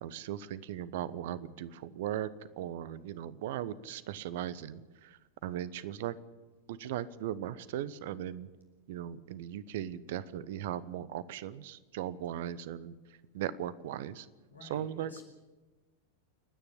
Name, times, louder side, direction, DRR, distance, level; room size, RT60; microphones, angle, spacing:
voice 1, 0.0-2.3 2.6-6.2 6.7-8.5 8.9-13.0 13.3-14.3 14.6-15.2, right 11 dB, 55° right, 18 dB, 1.0 m, -38 dB
voice 2, 14.5-15.2, left 2 dB, 80° left, 3 dB, 5.0 m, -49 dB
29.5 x 9.9 x 10.0 m, 1.2 s
figure-of-eight pair, 90°, 0 cm